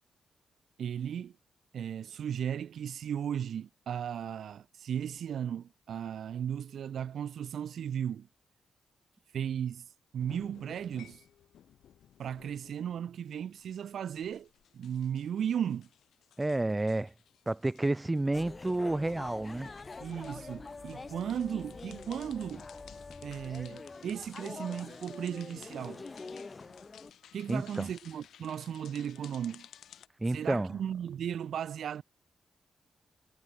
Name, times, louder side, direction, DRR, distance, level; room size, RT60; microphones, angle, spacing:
voice 1, 0.8-1.3 1.7-8.3 9.3-9.9 10.1-11.2 12.2-14.5 14.7-15.9 20.0-22.7 23.2-26.0 27.3-29.7 30.3-32.0, right 9 dB, 75° right, 1.1 m, -36 dB
sound 1, 10.2-30.1, left 10 dB, 85° left, 1.5 m, -57 dB
voice 2, 16.4-17.1 17.5-19.7 27.5-27.8 30.2-30.7, right 2 dB, 20° right, 0.5 m, -30 dB
sound 2, 18.3-27.1, left 3 dB, 35° left, 0.7 m, -45 dB
cardioid pair, 70°, 0 cm